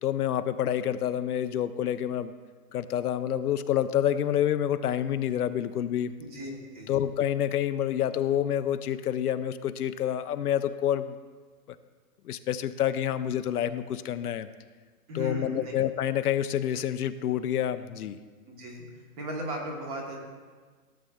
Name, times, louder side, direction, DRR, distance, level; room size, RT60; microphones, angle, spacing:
voice 1, 0.0-2.3 2.7-6.1 6.9-11.2 12.2-14.5 15.1-18.2, left 10 dB, 75° left, 11 dB, 0.6 m, -28 dB
voice 2, 6.2-6.9 15.1-15.7 18.5-18.9 19.2-20.2, equal, 25° right, 1 dB, 1.1 m, -36 dB
15.0 x 7.6 x 2.3 m, 1.5 s
hypercardioid pair, 165°, 46 cm